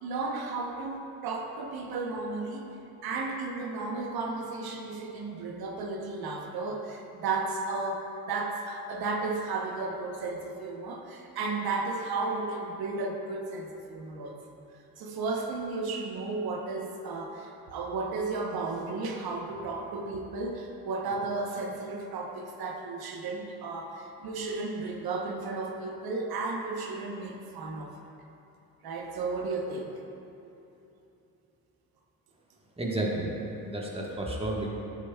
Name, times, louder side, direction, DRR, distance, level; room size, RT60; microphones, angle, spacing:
voice 1, 0.0-2.7 3.0-14.4 15.0-27.9 28.8-29.9, right 3 dB, 75° right, 2 dB, 0.9 m, -34 dB
voice 2, 32.8-34.7, right 1 dB, 15° right, -2 dB, 1.3 m, -32 dB
9.3 x 7.0 x 2.3 m, 2.9 s
supercardioid pair, 60°, 37 cm